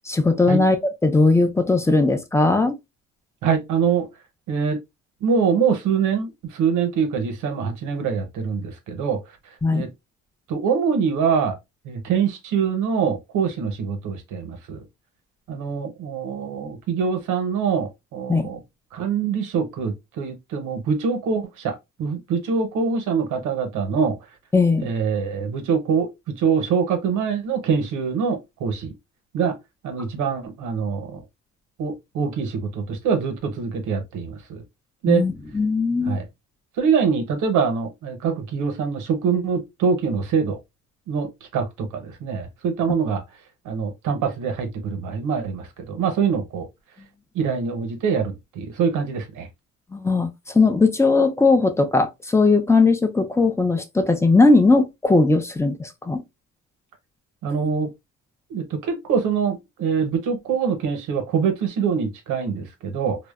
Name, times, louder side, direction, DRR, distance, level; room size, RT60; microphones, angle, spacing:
voice 1, 0.1-0.8 1.0-2.8 9.6-9.9 18.3-18.5 24.5-24.9 35.1-36.2 49.9-56.2, left 3 dB, 10° left, 0.4 m, -18 dB
voice 2, 3.4-4.1 4.5-4.8 5.2-9.2 9.7-9.9 10.5-11.5 11.8-14.8 15.5-18.6 18.9-24.2 24.8-28.9 29.3-29.5 29.8-31.2 31.8-34.6 35.0-35.2 36.1-36.2 36.8-40.6 41.1-43.2 43.6-46.7 47.3-49.5 57.4-57.9 58.5-63.2, right 6 dB, 85° right, 0.7 m, -24 dB
2.6 x 2.1 x 2.2 m
cardioid pair, 90°, 30 cm